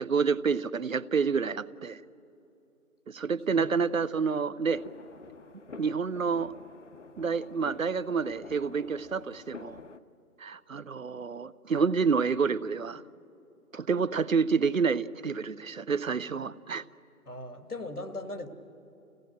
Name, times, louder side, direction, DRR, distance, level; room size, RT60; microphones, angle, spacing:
voice 1, 0.0-2.0 3.1-4.8 5.8-6.5 7.2-9.8 10.4-13.0 13.7-16.8, right 5 dB, 65° right, 17 dB, 0.7 m, -28 dB
sound 1, 4.7-10.0, left 4 dB, 55° left, 0.8 m, -48 dB
voice 2, 17.3-18.5, left 2 dB, 85° left, 7 dB, 2.1 m, -38 dB
28.0 x 16.5 x 7.7 m, 2.8 s
figure-of-eight pair, 160°, 45 cm